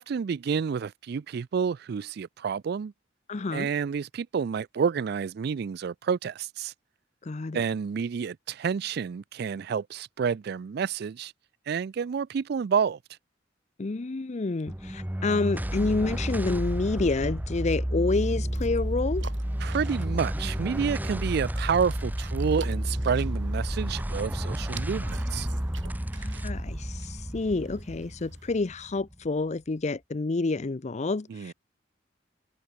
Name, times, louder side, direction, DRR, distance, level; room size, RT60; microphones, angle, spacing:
voice 1, 0.0-2.9 3.5-6.7 7.5-11.3 11.7-13.0 19.6-25.5 31.3-31.5, right 6 dB, 60° right, 0.4 m, -29 dB
voice 2, 3.3-3.7 7.3-7.6 13.8-19.3 26.1-31.5, left 3 dB, 40° left, 0.5 m, -28 dB
sound 1, 14.7-29.3, equal, 10° right, 0.9 m, -31 dB
sound 2, 18.1-28.6, right 5 dB, 80° right, 8.0 m, -49 dB
head